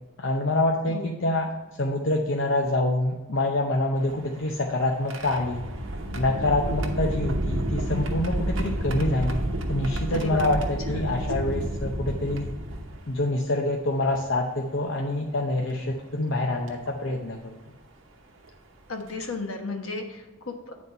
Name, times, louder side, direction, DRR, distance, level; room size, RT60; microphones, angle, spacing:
voice 1, 0.2-1.4 1.8-5.6 6.1-9.4 9.7-12.5 13.1-17.5, left 2 dB, 60° left, 0 dB, 0.7 m, -26 dB
voice 2, 0.9-1.3 10.1-10.5 10.9-11.2 18.9-20.7, left 3 dB, 75° left, 3 dB, 1.2 m, -35 dB
sound 1, 4.0-13.3 14.1-14.2 15.7-15.9 16.7-16.9 18.5-18.6 19.0-19.2, right 1 dB, 65° right, 0.9 m, -30 dB
8.9 x 4.2 x 5.4 m, 1.1 s
head